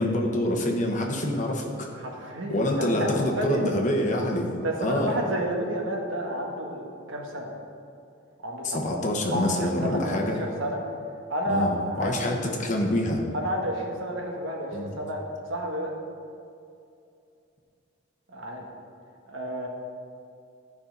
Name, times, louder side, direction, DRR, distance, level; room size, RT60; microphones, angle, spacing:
voice 1, 0.0-1.9 2.5-4.5 4.8-5.1 8.6-10.4 11.5-13.2 14.7-14.9, left 1 dB, 40° left, 0 dB, 1.1 m, -26 dB
voice 2, 2.0-3.1 3.4-3.7 4.6-7.5 8.4-9.0 9.3-10.8 11.3-12.4 13.3-15.2 15.5-15.9 18.3-18.7 19.3-19.7, equal, 75° right, 0 dB, 1.5 m, -31 dB
13.5 x 5.6 x 4.0 m, 2.6 s
head